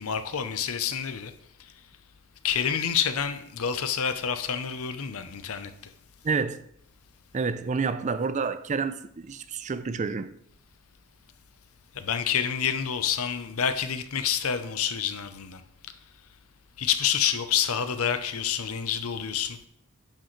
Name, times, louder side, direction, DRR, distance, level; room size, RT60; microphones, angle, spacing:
voice 1, 0.0-1.3 2.4-5.7 12.0-15.6 16.8-19.6, left 8 dB, 75° left, 0.7 m, -28 dB
voice 2, 6.2-6.6 7.3-10.3, right 5 dB, 35° right, 0.4 m, -29 dB
10.0 x 6.5 x 3.2 m
head